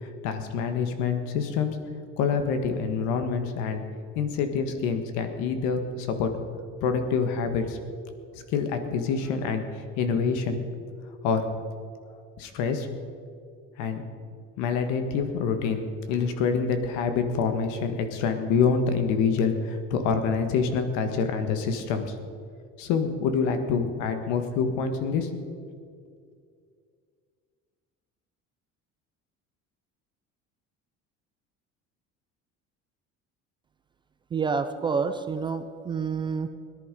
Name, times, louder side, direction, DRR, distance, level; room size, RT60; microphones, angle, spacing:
voice 1, 0.0-1.7 2.2-3.8 4.1-6.3 6.8-7.8 8.5-10.7 11.2-11.5 12.4-12.9 13.8-14.0 14.6-15.8 16.1-22.1 22.8-25.3, left 5 dB, 75° left, 7 dB, 1.6 m, -26 dB
voice 2, 34.3-36.5, right 5 dB, 15° right, 9 dB, 0.3 m, -28 dB
18.0 x 10.5 x 5.3 m, 2.2 s
cardioid pair, 180°, 29 cm